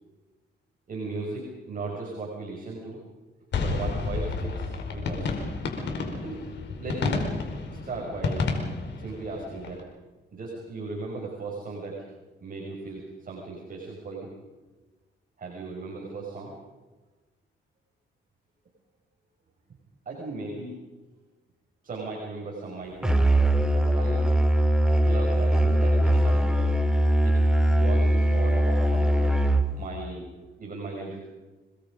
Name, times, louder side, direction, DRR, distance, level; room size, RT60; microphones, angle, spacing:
voice 1, 0.9-3.0 3.6-5.3 6.2-6.4 6.8-7.3 7.7-8.6 9.0-9.8 10.3-12.1 12.4-14.3 15.4-16.5 20.1-20.8 21.8-23.2 23.7-24.3 25.0-26.8 27.2-27.4 27.7-29.4 29.7-30.2 30.6-31.3, right 3 dB, 45° right, -2 dB, 6.1 m, -37 dB
sound 1, 3.5-9.8, left 4 dB, 65° left, 4.8 m, -30 dB
Musical instrument, 23.0-29.8, right 1 dB, 5° right, 2.6 m, -21 dB
28.0 x 21.0 x 5.2 m, 1.2 s
cardioid pair, 90°, 20 cm